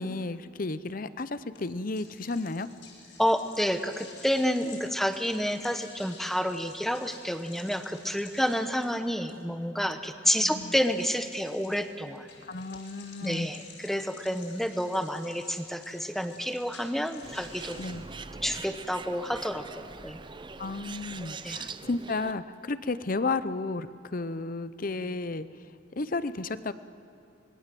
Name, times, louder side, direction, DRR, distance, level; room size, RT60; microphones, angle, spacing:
voice 1, 0.0-2.7 10.4-10.7 12.4-13.5 17.8-18.0 20.6-25.5 26.0-26.7, left 3 dB, 45° left, 14 dB, 0.7 m, -33 dB
sound 1, 1.5-17.9, left 5 dB, 70° left, 6.7 m, -52 dB
voice 2, 3.2-12.3 13.2-17.8 18.4-20.2 21.4-21.6, equal, ahead, 8 dB, 1.0 m, -29 dB
Bird, 17.2-22.3, right 4 dB, 25° right, 0.6 m, -42 dB
26.0 x 20.5 x 7.7 m, 2.9 s
head